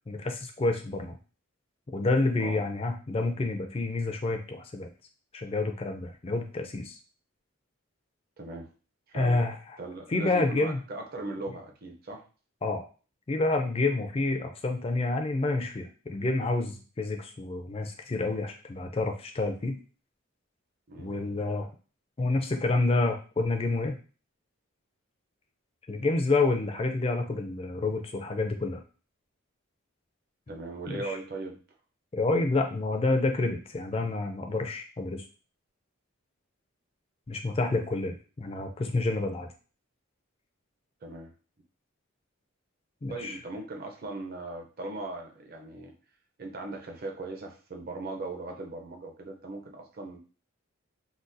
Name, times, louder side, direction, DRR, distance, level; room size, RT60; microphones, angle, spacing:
voice 1, 0.1-1.2 1.9-4.9 5.3-7.0 9.1-9.6 10.1-10.8 12.6-12.8 13.3-19.8 21.0-21.7 22.2-24.0 25.9-28.8 30.9-31.2 32.1-35.2 37.3-39.5 43.0-43.4, left 2 dB, 25° left, 5 dB, 0.4 m, -28 dB
voice 2, 8.4-8.7 9.1-9.4 9.8-12.2 20.9-21.1 30.5-31.6 37.7-37.9 41.0-41.3 43.1-45.9 46.4-50.2, right 2 dB, 45° right, 3 dB, 0.6 m, -39 dB
3.8 x 2.3 x 2.5 m, 0.37 s
head